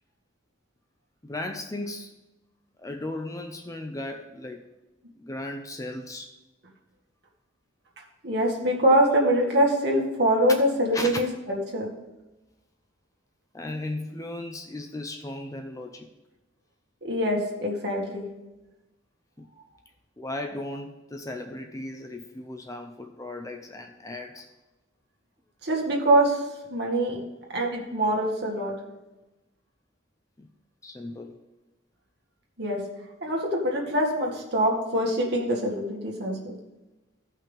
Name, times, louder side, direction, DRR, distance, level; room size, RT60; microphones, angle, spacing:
voice 1, 1.2-2.2 2.8-4.7 5.2-6.4 9.1-9.2 10.9-11.2 13.5-16.1 19.4-19.5 20.2-24.5 27.1-27.2 30.4-30.5 30.8-31.4, left 2 dB, 15° left, 5 dB, 0.5 m, -36 dB
voice 2, 8.2-11.9 17.0-18.2 25.6-26.4 26.7-27.2 27.5-28.8 32.6-32.8 33.2-36.6, right 1 dB, 55° right, -1 dB, 1.9 m, -24 dB
15.0 x 5.6 x 3.6 m, 1.0 s
head